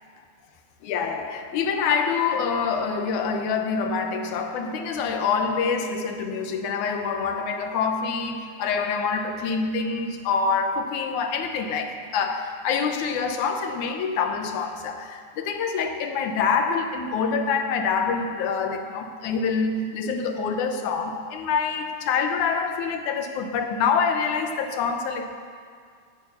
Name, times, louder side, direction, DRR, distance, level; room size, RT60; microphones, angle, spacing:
voice 1, 0.8-25.4, left 5 dB, 70° left, 5 dB, 2.1 m, -26 dB
17.5 x 8.8 x 7.0 m, 2.1 s
omnidirectional pair, 4.2 m